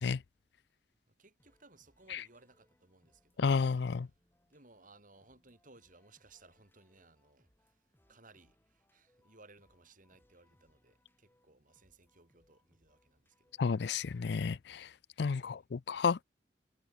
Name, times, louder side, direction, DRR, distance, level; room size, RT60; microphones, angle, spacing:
voice 1, 1.1-3.6 4.5-7.8 8.1-13.6 15.4-15.6, right 3 dB, 45° right, 6.9 m, -62 dB
sound 1, 1.4-14.5, left 1 dB, 10° left, 7.5 m, -74 dB
voice 2, 3.4-4.1 13.6-14.9 15.2-16.2, left 5 dB, 65° left, 0.4 m, -31 dB
head